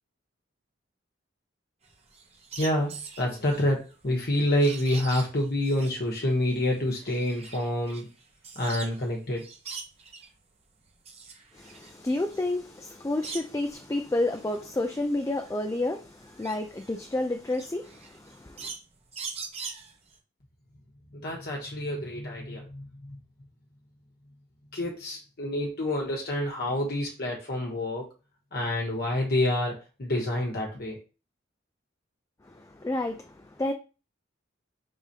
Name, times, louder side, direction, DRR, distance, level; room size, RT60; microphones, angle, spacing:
sound 1, 1.8-9.1 9.4-10.3 10.8-13.7 14.2-20.2, right 5 dB, 30° right, 0.9 m, -43 dB
voice 1, 2.5-8.1 8.5-9.4 21.1-23.2 24.7-28.1 28.5-31.0, left 1 dB, 55° left, 1.0 m, -28 dB
voice 2, 11.5-18.7 32.4-33.7, left 2 dB, 15° left, 0.3 m, -30 dB
4.8 x 3.6 x 2.8 m
head